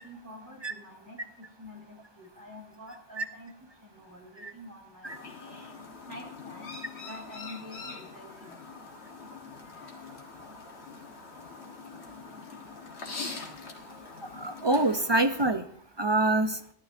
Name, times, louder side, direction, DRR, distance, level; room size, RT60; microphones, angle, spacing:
voice 1, 0.0-5.6 6.0-8.8, left 1 dB, 20° right, -4 dB, 4.7 m, -48 dB
Chirp tweet, 5.0-15.5, left 4 dB, 80° left, 1.7 m, -43 dB
voice 2, 14.4-15.6 16.0-16.6, right 2 dB, 35° right, 6 dB, 0.4 m, -25 dB
17.0 x 12.0 x 2.6 m, 0.66 s
omnidirectional pair, 1.1 m